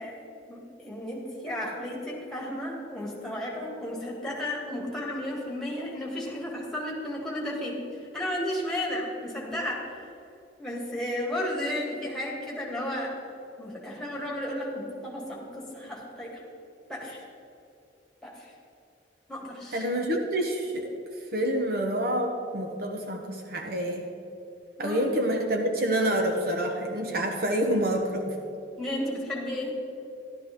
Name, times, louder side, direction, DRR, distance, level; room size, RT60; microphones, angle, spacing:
voice 1, 0.0-10.0 10.6-13.1 13.6-16.4 16.9-17.2 18.2-18.5 19.3-19.8 24.8-25.1 28.8-29.7, left 1 dB, 5° left, -3 dB, 2.5 m, -33 dB
voice 2, 19.7-20.9 21.3-24.1 24.8-28.4, right 1 dB, 55° right, 2 dB, 1.1 m, -27 dB
13.5 x 12.0 x 3.8 m, 2.7 s
head